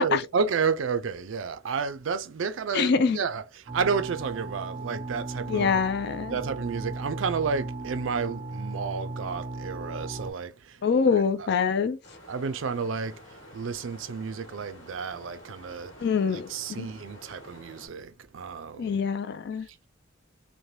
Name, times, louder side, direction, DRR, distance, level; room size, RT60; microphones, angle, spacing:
voice 1, 0.0-5.8 6.3-10.8 11.1-11.5 12.3-15.9 16.3-19.0 19.7-19.9, right 5 dB, 90° right, 0.4 m, -31 dB
voice 2, 2.7-3.2 5.5-6.4 10.8-12.0 16.0-16.9 18.8-19.7, left 5 dB, 60° left, 0.4 m, -25 dB
sound 1, 3.7-10.3, right 2 dB, 25° right, 0.4 m, -37 dB
sound 2, 12.0-17.9, equal, 75° left, 1.4 m, -49 dB
3.2 x 2.2 x 2.7 m
head